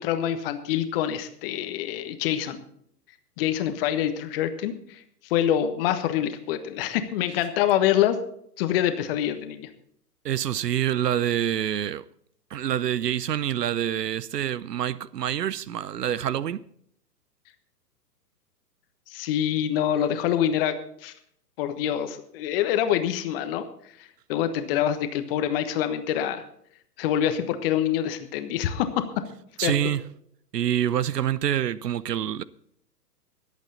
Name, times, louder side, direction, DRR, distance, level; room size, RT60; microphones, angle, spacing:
voice 1, 0.0-2.6 3.4-8.2 8.6-9.7 19.1-20.7 21.0-21.1 21.6-23.6 24.0-26.4 27.0-29.2 29.6-29.7, left 10 dB, 35° left, 1.3 m, -26 dB
voice 2, 10.2-12.0 12.5-16.6 29.6-30.1 30.5-32.4, right 10 dB, 70° right, 0.7 m, -26 dB
21.5 x 8.4 x 4.0 m
figure-of-eight pair, 120°, 50 cm